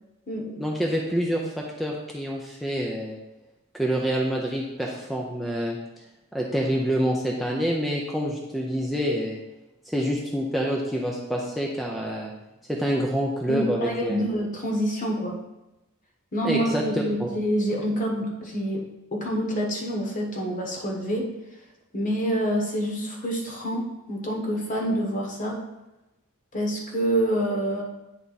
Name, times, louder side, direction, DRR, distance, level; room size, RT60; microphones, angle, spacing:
voice 1, 0.6-3.2 3.7-5.8 6.3-9.4 9.9-12.3 12.7-14.2 16.4-16.8 17.2-17.3, equal, ahead, -2 dB, 0.6 m, -27 dB
voice 2, 13.5-15.4 16.3-18.8 19.1-21.3 21.9-25.6 26.5-27.8, equal, 40° left, 0 dB, 1.2 m, -27 dB
9.0 x 3.5 x 4.1 m, 0.97 s
head